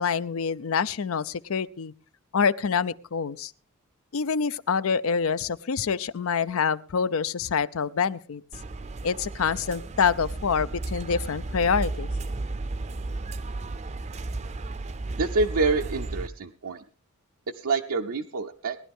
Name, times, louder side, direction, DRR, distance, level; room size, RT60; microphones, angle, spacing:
voice 1, 0.0-1.9 2.3-3.5 4.1-8.4 9.0-12.1, left 6 dB, 70° left, 17 dB, 0.5 m, -26 dB
sound 1, 8.5-16.3, right 2 dB, 30° right, 0.5 m, -34 dB
voice 2, 15.2-16.8 17.5-18.8, right 3 dB, 75° right, 3 dB, 0.6 m, -27 dB
19.0 x 11.0 x 3.6 m, 0.38 s
head